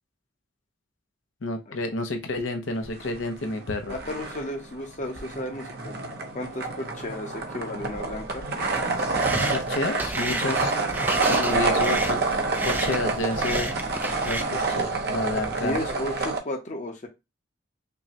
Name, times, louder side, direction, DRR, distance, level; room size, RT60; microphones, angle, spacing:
voice 1, 1.4-4.0 9.5-10.7 11.3-12.2 12.6-13.7 14.2-15.8, left 2 dB, 80° left, 6 dB, 0.7 m, -30 dB
sound 1, 2.8-3.6 3.9-16.4, right 3 dB, 55° right, 0.7 m, -28 dB
voice 2, 3.9-6.0 6.3-8.4 10.3-10.6 15.5-17.1, left 1 dB, 40° left, 2 dB, 0.8 m, -33 dB
sound 2, 8.6-14.4, right 2 dB, 10° right, 0.4 m, -32 dB
5.3 x 2.1 x 2.8 m, 0.23 s
head